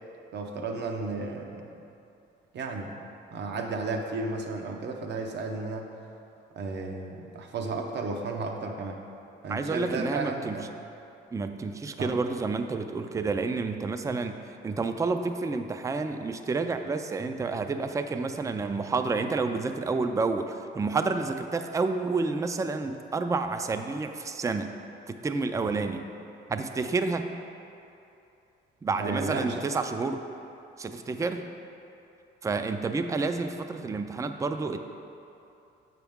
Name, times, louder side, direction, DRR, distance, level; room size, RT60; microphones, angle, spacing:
voice 1, 0.3-1.8 2.5-2.9 3.3-5.9 6.6-9.0 9.4-10.7 12.0-12.1 25.7-25.9 29.0-29.7, right 3 dB, 60° right, 3 dB, 0.8 m, -33 dB
voice 2, 9.5-10.6 11.3-14.4 14.6-24.7 25.1-26.0 26.5-27.3 28.8-30.2 30.8-31.5 32.4-34.8, right 4 dB, 15° right, 8 dB, 0.4 m, -29 dB
7.6 x 5.9 x 3.6 m, 2.7 s
cardioid pair, 90°, 20 cm